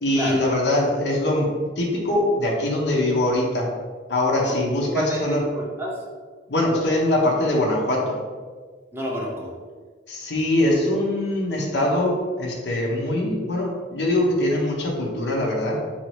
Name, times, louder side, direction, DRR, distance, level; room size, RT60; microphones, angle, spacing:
voice 1, 0.0-3.7 4.1-5.4 6.5-8.2 10.1-15.8, left 1 dB, 70° left, -2 dB, 0.8 m, -22 dB
voice 2, 4.4-6.0 8.9-9.5, equal, 15° right, -3 dB, 0.6 m, -29 dB
3.9 x 2.8 x 3.2 m, 1.5 s
head